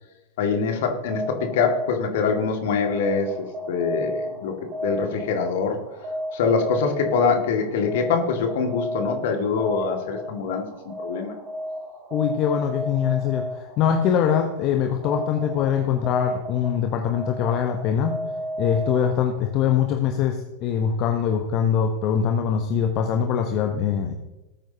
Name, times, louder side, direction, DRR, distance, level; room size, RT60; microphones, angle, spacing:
voice 1, 0.4-4.5 4.8-5.8 6.3-11.3, left 5 dB, 55° left, 4 dB, 2.1 m, -24 dB
sound 1, 1.0-19.5, equal, 30° right, 2.2 m, -33 dB
voice 2, 12.1-18.1 18.6-24.1, left 8 dB, 40° left, 5 dB, 1.1 m, -23 dB
19.0 x 9.0 x 2.9 m, 1.0 s
figure-of-eight pair, 90°, 0 cm